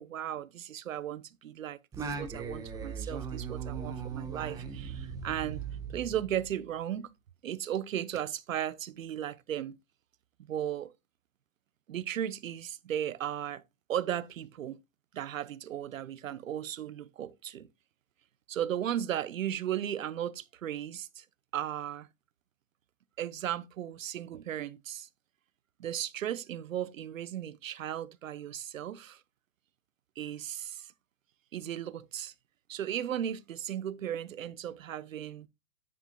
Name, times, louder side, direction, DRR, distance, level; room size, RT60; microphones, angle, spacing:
voice 1, 0.0-5.6 5.9-7.1 7.4-9.8 10.4-10.9 11.9-13.6 13.9-14.8 15.1-17.7 18.5-21.2 21.5-22.1 23.2-25.1 25.8-29.2 30.2-30.9 31.5-32.3 32.7-35.5, right 10 dB, 80° right, 0.8 m, -36 dB
Singing, 1.9-6.7, right 6 dB, 10° right, 1.1 m, -39 dB
9.7 x 7.7 x 2.2 m
hypercardioid pair, 145°, 39 cm